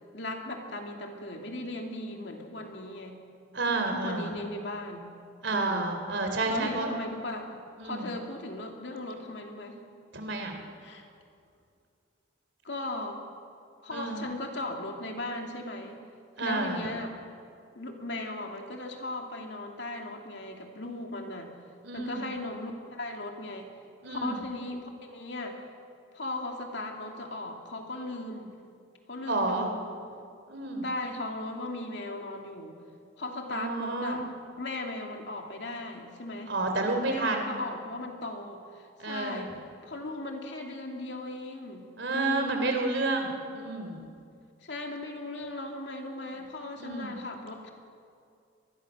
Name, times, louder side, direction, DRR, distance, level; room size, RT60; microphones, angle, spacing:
voice 1, 0.1-3.2 3.8-5.1 5.5-6.0 6.5-7.5 7.8-9.8 10.8-11.1 12.6-13.3 13.8-16.0 16.4-17.2 17.7-21.5 21.9-23.7 24.1-25.6 26.1-28.6 29.1-30.0 30.8-32.8 33.2-34.2 34.6-36.6 37.1-39.5 39.8-42.6 44.6-47.7, left 2 dB, 60° left, 2 dB, 2.7 m, -37 dB
voice 2, 3.5-4.3 5.4-6.9 7.8-8.1 10.1-10.6 13.9-14.2 16.4-16.9 21.8-22.2 24.0-24.4 29.3-29.7 30.5-30.8 33.5-34.2 36.5-37.5 39.0-39.4 42.0-44.0 46.8-47.1, right 2 dB, 65° right, 4 dB, 3.3 m, -30 dB
25.0 x 21.0 x 6.3 m, 2.4 s
head